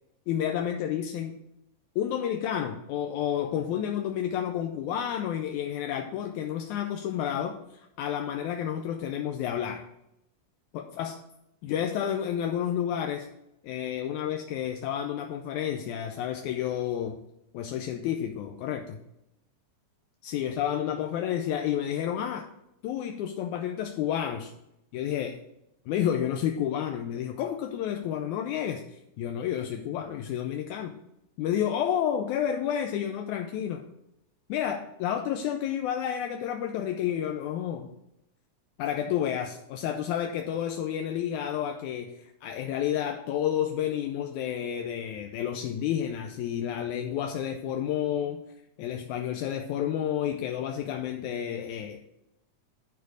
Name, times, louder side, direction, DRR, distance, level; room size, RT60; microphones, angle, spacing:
voice 1, 0.3-1.4 2.0-7.6 8.0-9.8 10.7-11.2 11.6-13.3 13.6-17.2 17.5-19.0 20.2-22.5 22.8-24.5 24.9-25.4 25.9-30.9 31.4-33.8 34.5-37.9 38.8-48.4 48.8-52.0, left 10 dB, 80° left, 4 dB, 2.0 m, -30 dB
11.0 x 4.3 x 6.4 m, 0.83 s
omnidirectional pair, 3.7 m